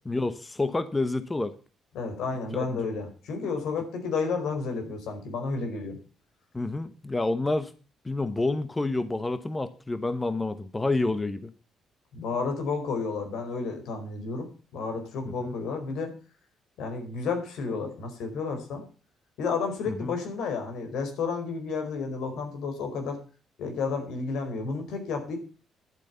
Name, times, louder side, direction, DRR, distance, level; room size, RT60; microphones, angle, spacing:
voice 1, 0.0-1.5 2.7-2.8 6.5-7.7 8.0-11.5 15.2-15.5 19.9-20.1, left 2 dB, 20° left, 12 dB, 1.1 m, -29 dB
voice 2, 1.9-6.0 12.1-16.1 16.8-18.8 19.4-23.2 23.6-25.4, left 4 dB, 80° left, 5 dB, 4.5 m, -31 dB
11.0 x 8.6 x 6.9 m, 0.38 s
cardioid pair, 90°, 0 cm